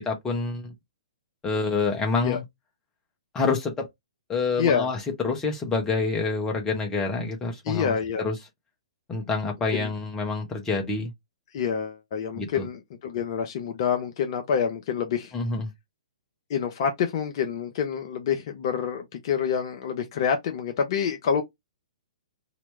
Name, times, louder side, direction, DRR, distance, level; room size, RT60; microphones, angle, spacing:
voice 1, 0.1-0.7 1.4-2.4 3.3-3.9 4.3-8.4 9.1-11.1 12.3-12.7 15.3-15.7, left 4 dB, 15° left, 1.2 m, -27 dB
voice 2, 4.6-4.9 7.7-8.2 9.8-9.9 11.5-15.3 16.5-21.4, left 7 dB, 45° left, 0.7 m, -27 dB
3.0 x 2.9 x 3.4 m
figure-of-eight pair, 115°, 3 cm